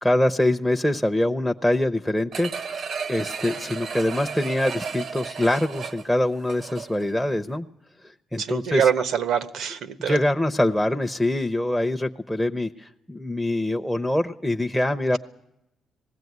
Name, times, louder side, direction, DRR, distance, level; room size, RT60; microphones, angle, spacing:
voice 1, 0.0-7.7 8.3-8.9 10.1-15.2, left 1 dB, ahead, 10 dB, 0.7 m, -24 dB
sound 1, 2.3-7.1 7.5-7.6, right 6 dB, 60° right, 0.9 m, -34 dB
voice 2, 8.4-10.2, right 7 dB, 75° right, 13 dB, 1.2 m, -24 dB
20.0 x 16.0 x 9.4 m, 0.86 s
cardioid pair, 90°, 0 cm